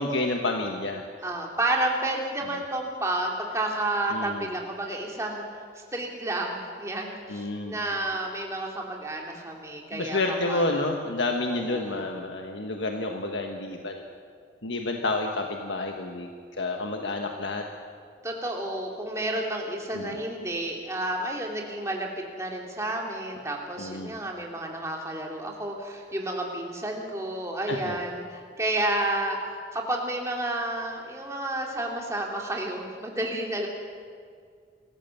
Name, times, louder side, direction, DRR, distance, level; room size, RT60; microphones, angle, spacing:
voice 1, 0.0-1.0 4.1-4.5 7.3-7.8 9.9-14.0 14.6-16.3 16.6-17.6 19.9-20.2 23.8-24.1 27.7-28.0, left 2 dB, 80° left, 2 dB, 1.4 m, -29 dB
voice 2, 1.2-5.4 5.9-10.2 10.5-10.6 11.5-12.1 18.2-22.1 22.4-33.7, right 1 dB, 15° right, 0 dB, 2.6 m, -31 dB
26.0 x 14.5 x 7.1 m, 2.1 s
head